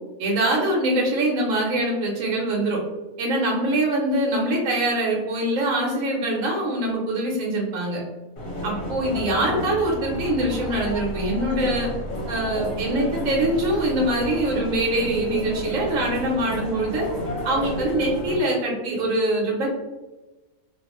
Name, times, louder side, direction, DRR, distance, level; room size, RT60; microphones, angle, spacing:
voice 1, 0.2-2.8 3.2-8.0 8.6-11.9 12.3-17.1 17.4-19.7, right 1 dB, 65° right, -2 dB, 1.0 m, -23 dB
sound 1, 8.4-18.4, left 1 dB, 45° left, 0.8 m, -32 dB
2.4 x 2.3 x 2.9 m, 1.1 s
omnidirectional pair, 1.6 m